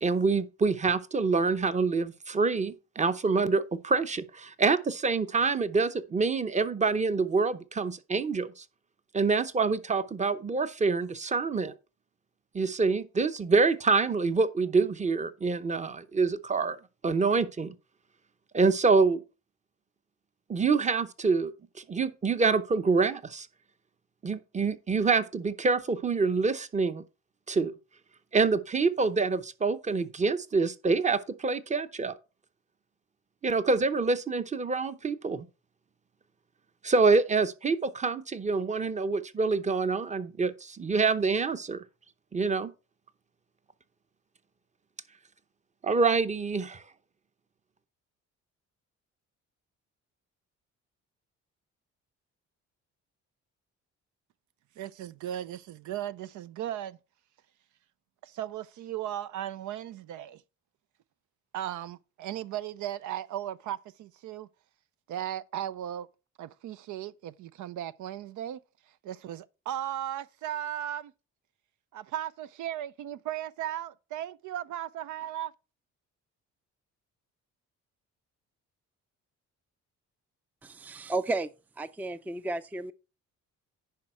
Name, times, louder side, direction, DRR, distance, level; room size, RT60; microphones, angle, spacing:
voice 1, 0.0-8.6 9.1-11.7 12.5-16.8 17.0-17.7 18.5-19.2 20.5-21.5 21.9-23.5 24.2-27.0 27.5-27.7 28.3-32.1 33.4-35.4 36.8-41.8 42.3-42.7 45.8-46.8, right 4 dB, 25° right, 0.8 m, -26 dB
voice 2, 54.8-57.0 58.2-60.4 61.5-64.5 65.1-66.1 66.4-68.6 69.0-71.1 71.9-75.5, right 11 dB, 75° right, 0.5 m, -36 dB
voice 3, 80.6-81.5 81.8-82.9, right 2 dB, 5° right, 0.4 m, -33 dB
10.5 x 4.8 x 4.4 m
cardioid pair, 90°, 30 cm